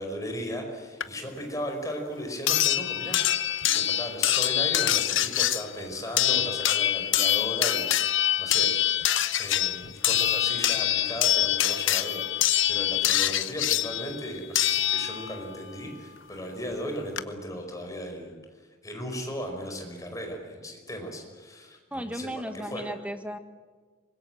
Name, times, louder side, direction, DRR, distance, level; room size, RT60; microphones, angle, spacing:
voice 1, 0.0-3.2 3.6-8.7 9.0-18.4 18.8-22.3 22.5-22.8, equal, 15° left, 3 dB, 4.9 m, -36 dB
sound 1, 1.0-1.1 2.5-15.5 16.7-16.8 17.2-17.3, left 12 dB, 75° left, 1.0 m, -25 dB
voice 2, 21.9-23.4, equal, 5° right, 7 dB, 1.4 m, -35 dB
25.0 x 21.5 x 7.8 m, 1.5 s
head